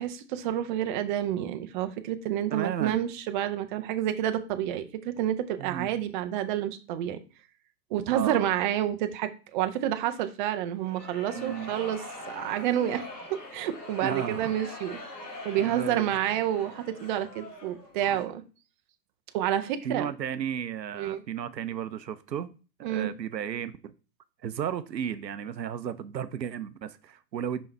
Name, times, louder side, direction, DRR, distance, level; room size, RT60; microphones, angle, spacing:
voice 1, 0.0-7.2 7.9-12.0 12.3-13.1 13.5-15.0 15.4-18.4 19.3-20.1 21.0-21.2 22.8-23.1, right 11 dB, 30° right, 0.5 m, -29 dB
voice 2, 2.5-3.0 5.6-5.9 8.1-8.5 11.3-11.7 14.0-14.6 15.6-16.2 18.0-18.3 19.8-22.5 22.8-23.9 24.4-27.7, right 9 dB, 80° right, 0.7 m, -34 dB
sound 1, 10.8-18.0, left 2 dB, 70° left, 2.4 m, -42 dB
5.4 x 5.3 x 3.3 m
figure-of-eight pair, 105°, 50 cm